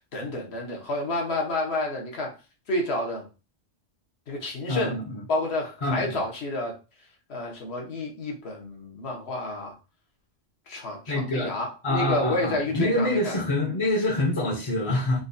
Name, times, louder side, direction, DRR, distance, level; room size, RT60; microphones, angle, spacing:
voice 1, 0.1-2.3 2.7-3.3 4.3-4.9 5.3-6.7 7.3-9.7 10.7-11.0 11.3-13.3, left 2 dB, 70° left, 1.2 m, -29 dB
voice 2, 4.7-5.2 5.8-6.2 11.1-11.5 11.8-15.2, left 1 dB, 30° left, 0.7 m, -26 dB
3.9 x 2.3 x 2.6 m
omnidirectional pair, 1.1 m